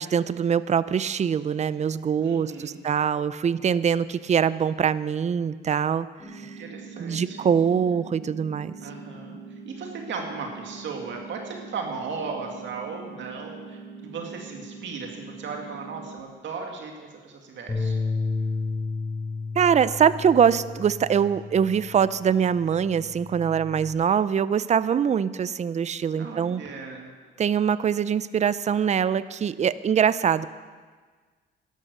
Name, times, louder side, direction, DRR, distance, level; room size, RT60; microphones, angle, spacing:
voice 1, 0.0-6.1 6.3-6.4 7.0-8.8 19.6-26.6 27.4-30.5, right 7 dB, 35° right, 16 dB, 0.5 m, -23 dB
voice 2, 2.2-2.8 6.4-7.5 8.8-9.4 9.7-16.9 17.2-18.0 26.2-27.1, right 5 dB, 70° right, 1 dB, 2.1 m, -36 dB
sound 1, 6.2-16.2, right 4 dB, 5° left, 3.0 m, -43 dB
Bass guitar, 17.7-22.2 22.5-23.9, left 4 dB, 25° left, 3.5 m, -32 dB
12.0 x 11.5 x 6.7 m, 1.5 s
cardioid pair, 90°, 20 cm